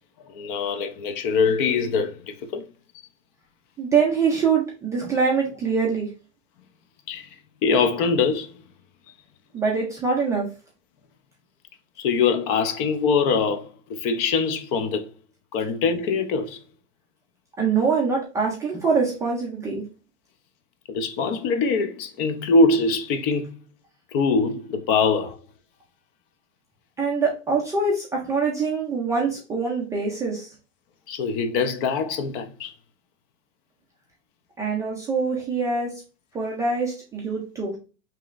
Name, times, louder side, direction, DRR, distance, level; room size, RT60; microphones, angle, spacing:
voice 1, 0.3-2.6 7.1-7.3 7.6-8.5 12.0-15.1 15.5-16.6 20.9-23.6 24.1-25.4 31.1-32.7, left 4 dB, 50° left, 0.6 m, -23 dB
voice 2, 3.8-6.1 9.5-10.4 17.6-19.8 27.0-30.5 34.6-35.9 36.3-37.7, right 5 dB, 10° right, 0.3 m, -24 dB
5.0 x 3.0 x 2.4 m
supercardioid pair, 155°, 35 cm